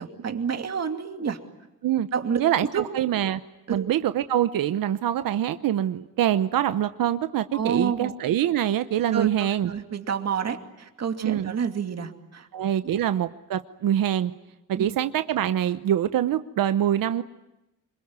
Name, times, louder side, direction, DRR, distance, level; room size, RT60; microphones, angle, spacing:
voice 1, 0.0-1.4 2.1-2.9 3.7-3.9 7.5-8.1 9.1-12.5 14.7-15.0, right 7 dB, 50° right, 5 dB, 2.6 m, -29 dB
voice 2, 2.4-3.4 3.7-9.7 11.2-11.5 12.5-14.3 14.7-17.2, right 11 dB, 75° right, 11 dB, 1.0 m, -24 dB
26.5 x 22.5 x 9.6 m, 0.97 s
cardioid pair, 105°, 34 cm